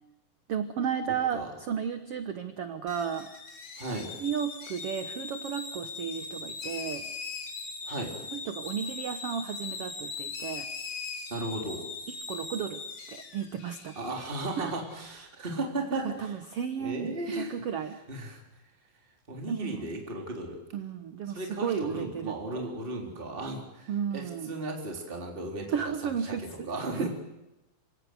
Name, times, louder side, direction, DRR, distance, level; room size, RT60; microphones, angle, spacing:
voice 1, 0.5-3.3 4.2-7.1 8.3-10.7 12.1-12.8 13.1-14.0 14.6-14.7 16.0-18.0 19.5-19.9 20.7-22.6 23.9-24.5 25.7-26.7 26.9-27.1, right 8 dB, 65° right, 9 dB, 1.5 m, -33 dB
sound 1, 2.9-15.1, left 4 dB, 40° left, 2.7 m, -40 dB
voice 2, 3.8-4.1 7.8-8.1 11.3-11.9 14.0-16.3 16.8-17.6 18.1-18.4 19.3-20.6 21.3-25.9 26.3-27.1, right 2 dB, 15° right, 1 dB, 3.7 m, -35 dB
26.5 x 17.5 x 8.0 m, 0.96 s
omnidirectional pair, 4.3 m